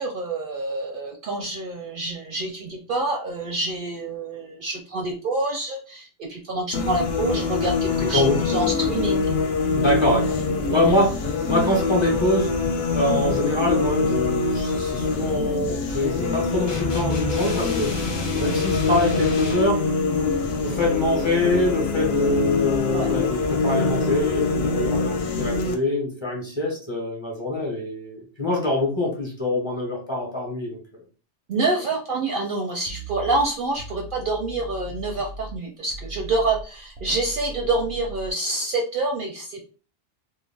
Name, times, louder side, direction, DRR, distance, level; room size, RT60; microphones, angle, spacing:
voice 1, 0.0-9.3 22.9-23.1 31.5-39.6, right 2 dB, 60° right, 1 dB, 0.6 m, -27 dB
sound 1, 6.7-25.8, left 4 dB, 65° left, 0.8 m, -24 dB
voice 2, 8.0-8.4 9.7-10.4 10.7-12.5 12.9-18.0 18.4-19.8 20.6-30.8, left 1 dB, 30° left, -2 dB, 0.7 m, -24 dB
sound 2, 16.7-19.8, left 1 dB, 45° left, 0.3 m, -31 dB
sound 3, 32.9-35.6 35.9-38.3, right 2 dB, 85° right, 0.9 m, -38 dB
2.4 x 2.2 x 3.3 m, 0.36 s
omnidirectional pair, 1.2 m